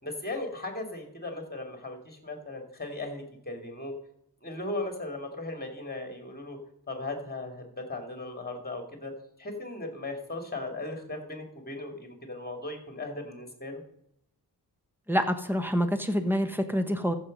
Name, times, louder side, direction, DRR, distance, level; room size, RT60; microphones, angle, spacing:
voice 1, 0.0-3.9 4.4-6.6 6.9-9.1 9.4-13.8, left 2 dB, 25° left, 4 dB, 2.6 m, -37 dB
voice 2, 15.1-17.1, equal, 5° right, 8 dB, 1.1 m, -27 dB
14.0 x 6.4 x 5.4 m, 0.76 s
wide cardioid pair, 90°, 40 cm